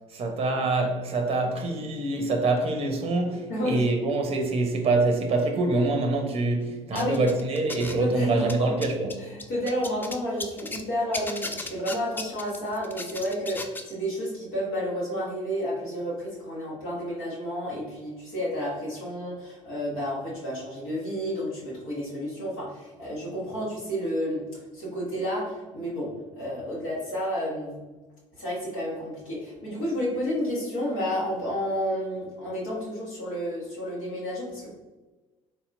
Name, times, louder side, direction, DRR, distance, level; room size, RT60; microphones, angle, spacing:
voice 1, 0.1-9.3, right 2 dB, 35° right, 0.7 m, -25 dB
voice 2, 3.5-3.8 6.9-7.2 8.0-8.7 9.3-26.1 26.4-27.8 28.4-34.7, equal, 70° left, 1.5 m, -31 dB
sound 1, 7.0-8.1 8.4-10.8 11.1-13.9, left 2 dB, 10° left, 0.4 m, -36 dB
3.9 x 2.8 x 2.6 m
figure-of-eight pair, 55°, 17 cm